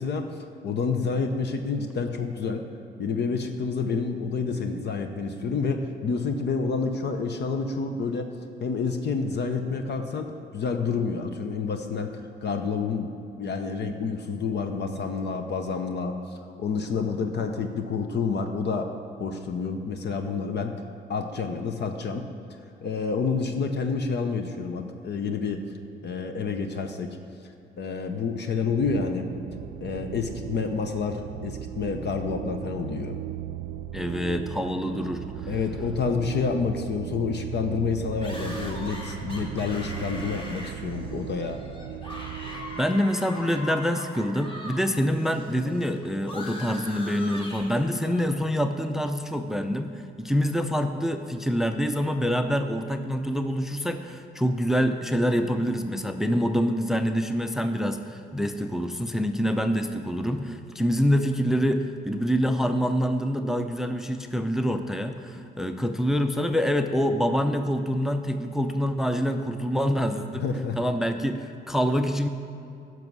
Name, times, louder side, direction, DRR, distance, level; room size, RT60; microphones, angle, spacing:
voice 1, 0.0-2.7 3.0-8.3 8.6-10.3 10.5-18.9 19.2-20.7 21.1-22.3 22.8-25.7 26.0-27.1 27.4-29.3 29.8-33.2 35.5-41.6 70.3-70.8, left 5 dB, 60° left, 6 dB, 0.8 m, -29 dB
sound 1, 28.8-42.8, right 10 dB, 85° right, 0.4 m, -37 dB
voice 2, 33.9-35.5 42.5-70.4 70.8-72.3, equal, ahead, 7 dB, 0.5 m, -26 dB
sound 2, 38.2-44.8 45.1-48.3, left 1 dB, 25° left, 1.9 m, -41 dB
10.5 x 6.1 x 6.2 m, 2.7 s
cardioid pair, 90°, 20 cm